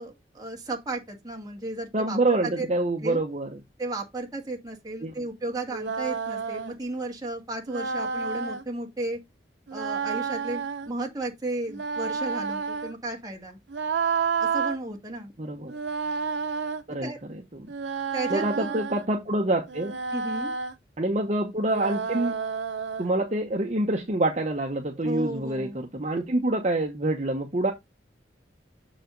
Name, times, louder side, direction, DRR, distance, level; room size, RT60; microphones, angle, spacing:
voice 1, 0.0-2.7 3.0-3.2 3.8-9.2 9.7-13.6 14.4-15.3 17.0-17.2 18.1-18.8 20.1-20.5 25.0-25.8, right 2 dB, 20° right, 1.8 m, -34 dB
voice 2, 1.9-3.6 5.0-5.1 15.4-15.7 16.9-17.7 18.3-20.0 21.0-22.4 23.0-27.7, right 2 dB, 40° right, 1.0 m, -26 dB
sound 1, 5.7-6.8 7.7-8.6 9.7-10.9 11.7-12.9 13.7-14.8 15.7-16.8 17.7-19.1 19.7-20.7 21.7-23.1, right 5 dB, 85° right, 0.7 m, -30 dB
7.0 x 4.9 x 3.9 m
head